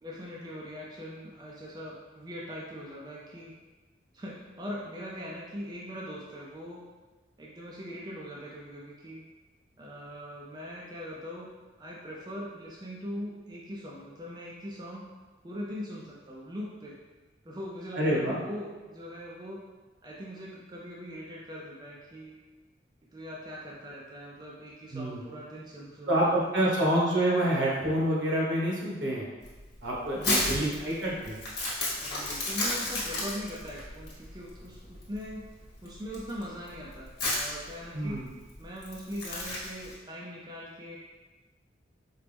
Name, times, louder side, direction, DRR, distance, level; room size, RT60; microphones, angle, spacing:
voice 1, 0.0-3.5 4.1-6.8 7.4-9.2 9.8-11.5 11.8-15.1 15.4-17.0 17.4-19.6 20.0-22.4 23.1-26.3 26.6-27.0 30.1-31.1 32.0-35.5 35.8-38.3 38.6-41.0, equal, 20° right, -4 dB, 0.4 m, -41 dB
voice 2, 17.9-18.4 24.9-25.2 26.1-29.3 29.8-31.4 37.9-38.3, right 1 dB, 80° right, -5 dB, 1.1 m, -27 dB
Crumpling crinkling, 29.4-39.9, left 2 dB, 65° left, 1.0 m, -33 dB
4.4 x 2.0 x 3.3 m, 1.3 s
head